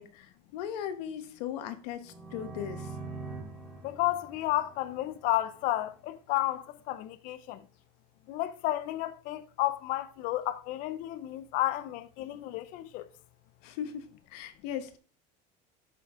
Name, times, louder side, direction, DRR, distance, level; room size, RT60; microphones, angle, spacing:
voice 1, 0.0-3.0 13.6-15.0, left 9 dB, 85° left, 1.1 m, -38 dB
sound 1, 2.0-5.7, right 3 dB, 5° left, 2.0 m, -44 dB
voice 2, 3.8-7.6 8.3-13.1, left 15 dB, 45° left, 0.5 m, -32 dB
11.5 x 4.6 x 3.6 m
cardioid pair, 180°, 20 cm